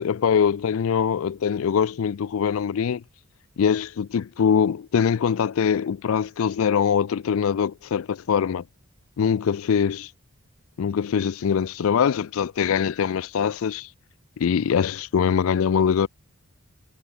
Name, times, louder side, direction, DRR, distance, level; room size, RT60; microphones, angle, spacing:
voice 1, 0.0-3.0 3.6-8.6 9.2-10.1 10.8-13.9 14.4-16.1, left 7 dB, 75° left, 0.4 m, -23 dB
head